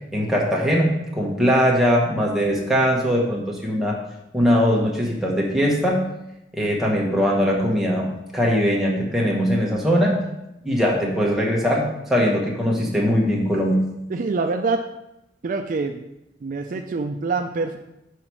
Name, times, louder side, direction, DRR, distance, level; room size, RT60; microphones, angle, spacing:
voice 1, 0.1-4.0 4.3-6.1 6.5-10.2 10.6-13.9, equal, ahead, -3 dB, 1.1 m, -21 dB
voice 2, 14.1-14.8 15.4-16.0 16.4-17.8, right 3 dB, 45° right, 5 dB, 0.4 m, -25 dB
5.8 x 4.9 x 4.6 m, 0.89 s
head